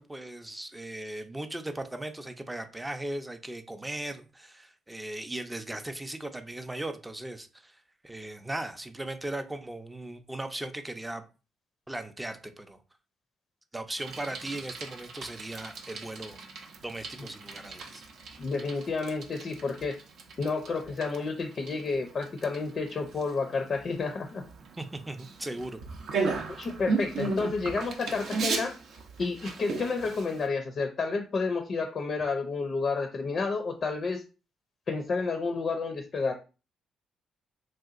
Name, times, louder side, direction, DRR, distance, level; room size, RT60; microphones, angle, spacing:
voice 1, 0.0-11.3 11.9-12.8 13.7-16.4 16.8-18.0 24.8-25.8, right 1 dB, 10° right, 0.4 m, -38 dB
Bicycle, 14.0-30.5, right 4 dB, 70° right, 0.6 m, -37 dB
voice 2, 18.4-20.0 20.4-24.4 26.5-28.8 29.2-34.2 34.9-36.3, left 4 dB, 45° left, 0.4 m, -30 dB
3.3 x 2.8 x 2.4 m
cardioid pair, 90°, 0 cm